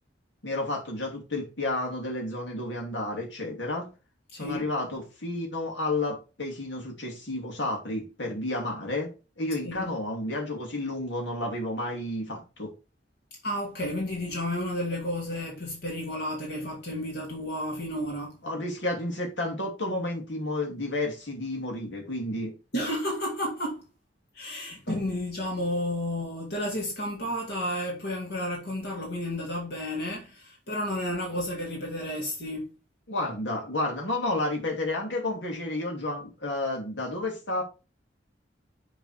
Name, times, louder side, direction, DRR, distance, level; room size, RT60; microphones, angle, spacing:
voice 1, 0.4-3.9 4.3-12.7 18.4-22.5 33.1-37.6, left 2 dB, 90° left, 2.6 m, -31 dB
voice 2, 4.3-4.7 9.6-9.9 13.4-18.4 22.7-23.8 24.3-32.7, left 1 dB, 65° left, 2.3 m, -32 dB
7.1 x 4.1 x 4.4 m
head